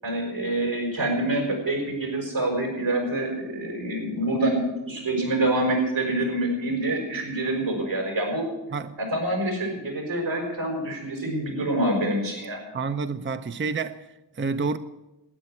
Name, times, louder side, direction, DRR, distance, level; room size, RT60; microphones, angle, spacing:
voice 1, 0.0-8.5 9.0-12.6, right 1 dB, 80° right, 6.1 m, -26 dB
voice 2, 12.7-14.8, right 4 dB, 25° right, 0.6 m, -29 dB
12.5 x 9.6 x 9.6 m
cardioid pair, 55°, 45 cm